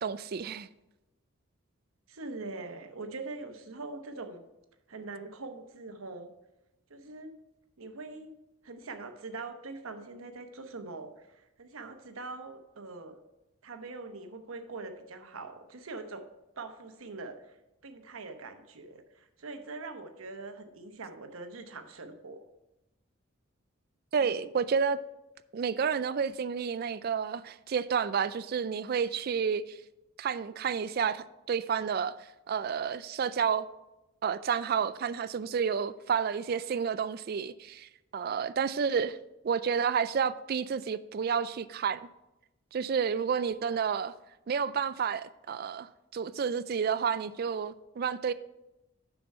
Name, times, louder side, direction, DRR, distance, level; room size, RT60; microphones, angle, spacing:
voice 1, 0.0-0.7 24.1-25.0 25.5-29.8 30.2-32.2 32.5-33.7 34.2-39.2 39.4-42.0 42.7-44.1 44.5-48.3, right 6 dB, 45° right, 0.3 m, -30 dB
voice 2, 2.1-4.4 4.9-6.3 6.9-7.3 7.8-8.3 8.6-13.2 13.6-16.3 16.6-17.6 17.8-22.4 24.2-24.4, right 3 dB, 85° right, 0.9 m, -43 dB
7.0 x 6.1 x 5.3 m
head